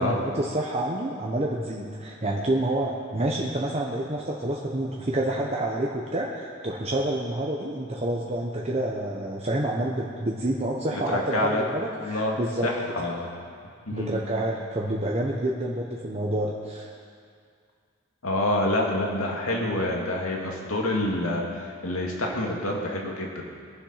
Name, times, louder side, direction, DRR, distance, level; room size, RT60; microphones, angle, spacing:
voice 1, 0.0-12.7 13.0-13.1 13.9-16.9, right 1 dB, 30° right, -2 dB, 1.1 m, -28 dB
voice 2, 10.9-11.6 12.0-12.4 12.6-13.3 13.9-14.2 18.2-23.4, left 1 dB, 90° left, -1 dB, 2.2 m, -27 dB
22.5 x 7.5 x 5.8 m, 2.2 s
head